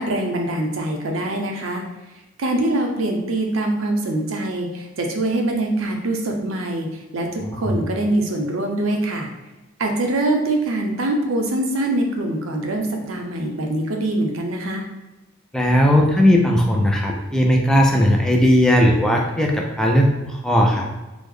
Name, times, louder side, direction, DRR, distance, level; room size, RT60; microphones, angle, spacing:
voice 1, 0.0-1.8 2.4-9.3 9.8-14.8, right 1 dB, 85° right, 2 dB, 0.6 m, -23 dB
voice 2, 7.4-7.8 15.5-20.9, equal, 5° left, 0 dB, 0.3 m, -17 dB
3.1 x 2.0 x 3.6 m, 1.1 s
head